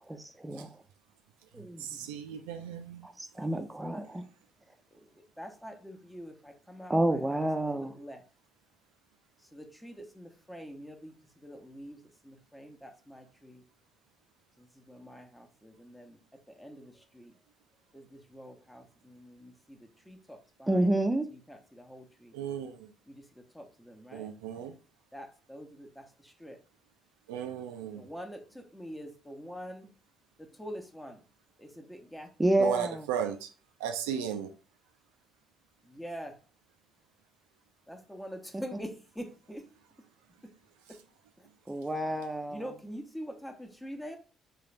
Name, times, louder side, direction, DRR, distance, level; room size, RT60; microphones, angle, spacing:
voice 1, 0.1-0.8 1.5-1.9 3.0-4.2 6.9-7.9 20.7-21.3 32.4-33.1 38.5-38.6 41.7-42.7, right 1 dB, 15° right, 0.6 m, -29 dB
voice 2, 1.8-3.0 22.3-22.7 24.1-24.7 27.3-28.0 32.6-33.5 33.8-34.5, right 8 dB, 75° right, 0.3 m, -35 dB
voice 3, 5.4-8.2 9.5-11.1 11.4-12.0 12.2-13.6 14.6-16.2 16.6-17.3 17.9-21.1 21.5-22.3 23.1-23.2 23.5-24.3 25.1-26.6 28.0-29.9 30.6-31.2 31.6-32.5 35.8-36.3 37.9-39.6 40.9-41.0 41.4-41.5 42.5-44.2, equal, 10° left, 0.9 m, -45 dB
3.8 x 2.5 x 3.3 m
figure-of-eight pair, 45°, 0 cm